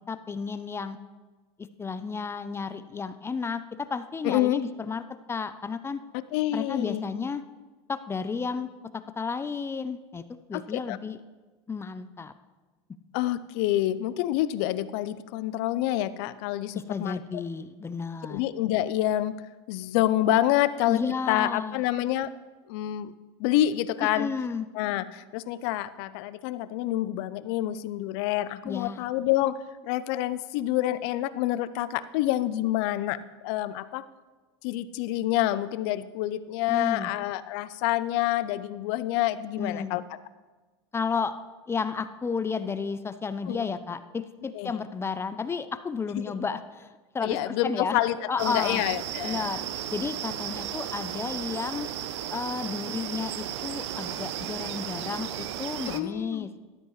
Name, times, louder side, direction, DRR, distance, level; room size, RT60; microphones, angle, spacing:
voice 1, 0.1-1.0 1.8-5.0 5.3-6.0 6.5-7.4 7.9-8.7 9.2-10.2 10.5-11.2 11.7-12.3 16.7-18.4 20.9-21.8 24.0-24.7 28.6-29.0 36.7-37.1 39.6-40.0 40.9-41.3 41.7-48.0 48.3-48.8 49.2-49.6 49.9-51.9 52.3-56.5, left 5 dB, 15° left, 12 dB, 0.5 m, -32 dB
voice 2, 4.2-4.6 6.3-7.0 10.5-11.0 13.1-17.4 18.3-19.3 19.7-21.0 21.3-22.3 22.7-23.1 23.4-24.3 24.7-33.2 33.4-34.1 34.6-40.0 43.5-43.7 44.5-44.8 47.2-49.6 55.8-56.5, left 14 dB, 60° left, 15 dB, 0.6 m, -27 dB
sound 1, 48.4-56.0, right 11 dB, 75° right, 0.7 m, -34 dB
13.0 x 12.5 x 3.2 m, 1.3 s
hypercardioid pair, 100°, 15 cm